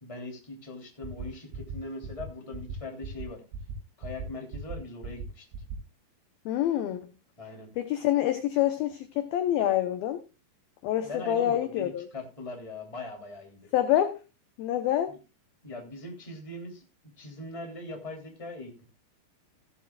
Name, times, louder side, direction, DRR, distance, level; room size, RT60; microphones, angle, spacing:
voice 1, 0.0-3.4 4.0-5.5 7.4-7.7 11.0-13.7 15.1-15.2 15.6-16.8 17.2-18.8, left 2 dB, 10° left, 2 dB, 2.2 m, -41 dB
sound 1, 1.0-1.3 1.5-1.8 2.0-2.3 2.5-2.8 3.0-3.3 3.5-3.7 4.0-4.3 4.5-4.8 5.0-5.3 5.5-5.8, right 7 dB, 80° right, 4.0 m, -37 dB
voice 2, 6.5-7.0 7.8-10.2 10.8-12.1 13.7-14.2 14.6-15.2, left 12 dB, 75° left, 9 dB, 2.2 m, -26 dB
15.5 x 11.5 x 2.4 m, 0.30 s
omnidirectional pair, 5.3 m